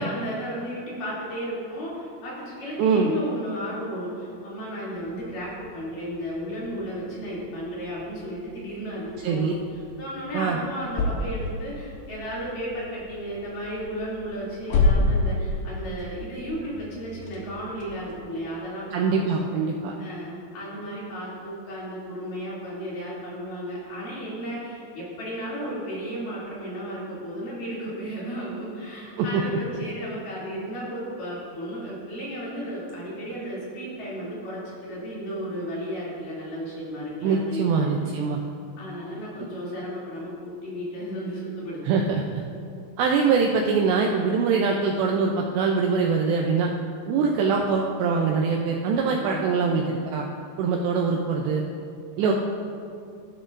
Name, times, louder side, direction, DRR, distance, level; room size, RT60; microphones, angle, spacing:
voice 1, 0.0-9.5 10.0-19.4 20.0-38.0 38.8-41.8 47.1-47.4 49.1-49.5 52.2-52.3, equal, 50° left, -7 dB, 4.0 m, -34 dB
voice 2, 2.8-3.1 9.2-9.5 10.3-10.6 18.9-20.0 29.2-29.4 37.2-38.4 41.8-42.2 43.0-46.7 47.1-50.3 50.6-51.6 52.2-52.3, right 5 dB, 85° right, 0 dB, 2.4 m, -23 dB
sound 1, 5.0-18.2, left 2 dB, 70° left, 2.5 m, -31 dB
13.0 x 13.0 x 2.6 m, 2.4 s
omnidirectional pair, 5.7 m